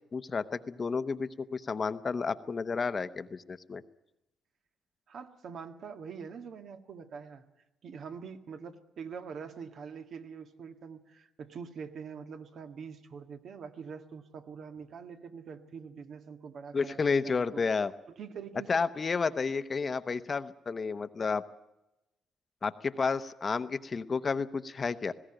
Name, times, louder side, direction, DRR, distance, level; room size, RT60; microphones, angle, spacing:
voice 1, 0.1-3.8 16.7-17.9 18.7-21.4 22.6-25.1, left 5 dB, 35° left, 12 dB, 0.9 m, -31 dB
voice 2, 5.1-7.4 7.8-17.6 18.2-18.9, right 6 dB, 60° right, 7 dB, 1.8 m, -44 dB
20.0 x 16.5 x 8.9 m, 0.95 s
cardioid pair, 90°, 0 cm